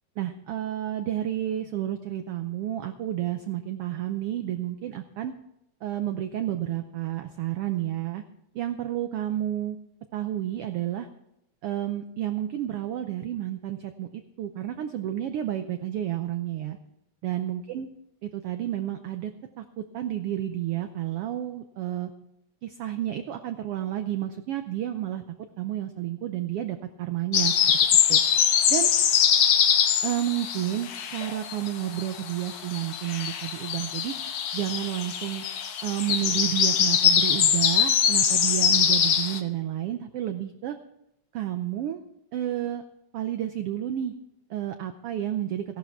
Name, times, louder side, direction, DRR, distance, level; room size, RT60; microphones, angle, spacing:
voice 1, 0.2-5.3 5.8-8.2 8.5-9.8 10.1-11.1 11.6-16.8 17.2-17.9 18.2-22.1 22.6-25.2 25.6-27.8 28.1-28.2 28.7-28.9 30.0-35.4 35.8-40.8 41.3-42.0 42.3-42.8 43.1-44.1 44.5-45.6, right 12 dB, 80° right, 8 dB, 1.3 m, -31 dB
sound 1, 27.3-31.7 31.9-39.4, left 8 dB, 65° left, 1.4 m, -23 dB
15.5 x 11.5 x 4.5 m, 0.82 s
omnidirectional pair, 3.4 m